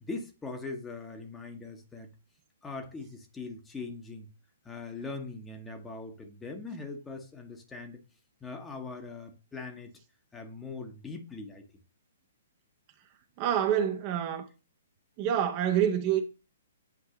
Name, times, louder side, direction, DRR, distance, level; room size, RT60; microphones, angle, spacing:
voice 1, 0.0-2.1 2.6-4.3 4.6-8.0 8.4-9.9 10.3-11.7, left 3 dB, 10° left, 1.0 m, -41 dB
voice 2, 13.4-14.5 15.2-16.2, right 9 dB, 35° right, 0.8 m, -27 dB
8.4 x 4.6 x 2.9 m
figure-of-eight pair, 120°, 0 cm